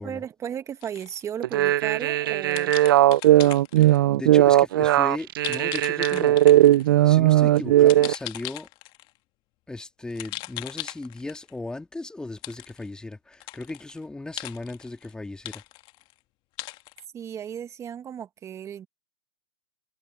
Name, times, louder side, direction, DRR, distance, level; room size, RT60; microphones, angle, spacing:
voice 1, 0.0-2.7 17.1-18.9, right 9 dB, 25° right, 1.8 m, -35 dB
sound 1, 0.8-1.2 2.5-4.0 5.4-6.9 7.9-9.1 10.1-11.5 12.4-12.9 13.3-14.0 14.4-15.1 15.5-16.1 16.6-17.0, left 19 dB, 40° left, 2.0 m, -38 dB
sound 2, 1.4-8.1, right 14 dB, 65° right, 0.5 m, -18 dB
voice 2, 3.8-6.4 7.0-8.7 9.7-15.6, left 2 dB, 5° left, 2.2 m, -36 dB
hypercardioid pair, 120°, 13 cm